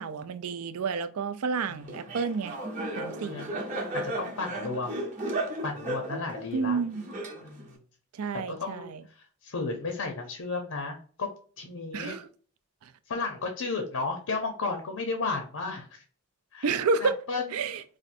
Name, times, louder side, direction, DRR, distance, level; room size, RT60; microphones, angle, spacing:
voice 1, 0.0-2.6 3.0-3.5 6.5-7.0 8.2-9.0 11.9-12.3 16.6-17.2 17.5-17.8, right 4 dB, 80° right, 0.4 m, -30 dB
Laughter, 1.9-7.7, right 1 dB, 35° right, 0.8 m, -35 dB
voice 2, 3.2-3.5 3.9-5.0 5.6-6.8 7.4-7.8 8.5-11.3 11.6-12.2 13.1-16.0 16.5-17.5, left 3 dB, 80° left, 0.7 m, -33 dB
4.2 x 2.6 x 2.5 m
head